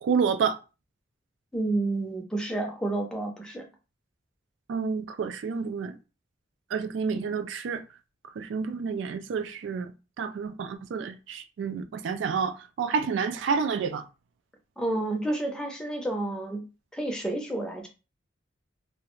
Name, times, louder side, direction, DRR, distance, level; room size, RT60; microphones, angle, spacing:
voice 1, 0.0-0.6 4.7-6.0 6.7-7.8 8.4-9.9 10.2-14.0, right 5 dB, 70° right, 0.3 m, -29 dB
voice 2, 1.5-3.6 14.8-16.6 16.9-17.9, right 2 dB, 5° left, 0.5 m, -30 dB
2.3 x 2.1 x 3.0 m
head